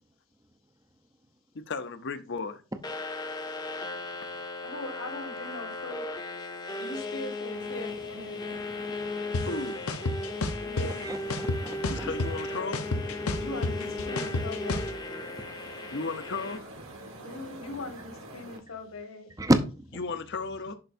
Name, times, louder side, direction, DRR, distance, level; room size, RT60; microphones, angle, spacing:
voice 1, 1.5-2.6 9.4-9.8 11.9-12.8 15.9-16.7 20.0-20.7, left 4 dB, 55° left, 0.7 m, -35 dB
sound 1, 2.8-16.6, left 2 dB, 20° left, 0.8 m, -36 dB
voice 2, 4.6-6.1 6.8-8.6 10.6-11.0 13.3-15.0 17.2-19.3, left 2 dB, 70° left, 1.7 m, -40 dB
sound 2, 7.4-18.6, right 1 dB, 60° right, 1.9 m, -47 dB
sound 3, 9.3-9.4 9.9-10.9 11.3-12.4 12.7-14.9, left 2 dB, 85° left, 0.8 m, -30 dB
voice 3, 10.8-12.1 13.2-13.4 19.4-20.0, right 1 dB, 15° right, 0.6 m, -29 dB
11.0 x 4.6 x 2.6 m
head